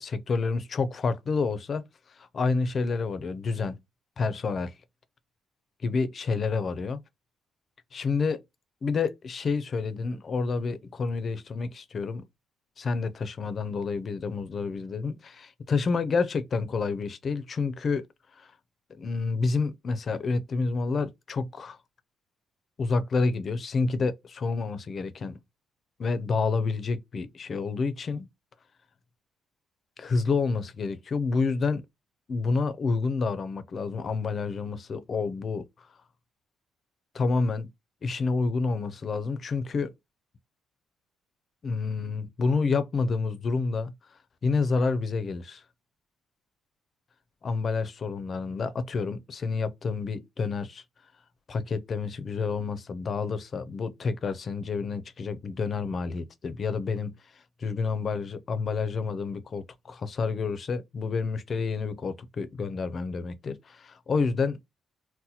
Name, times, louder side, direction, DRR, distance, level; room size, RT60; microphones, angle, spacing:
voice 1, 0.0-1.8 2.2-3.8 4.2-4.7 5.8-7.0 7.9-8.4 8.8-12.2 12.8-18.0 18.4-18.5 19.0-21.8 22.8-25.4 26.0-28.3 30.0-31.8 32.3-35.9 37.1-37.7 38.0-39.9 41.6-43.9 44.4-45.6 47.4-50.8 51.5-57.2 57.6-64.6, left 4 dB, 40° left, 0.5 m, -29 dB
2.8 x 2.1 x 4.0 m
cardioid pair, 130°, 0 cm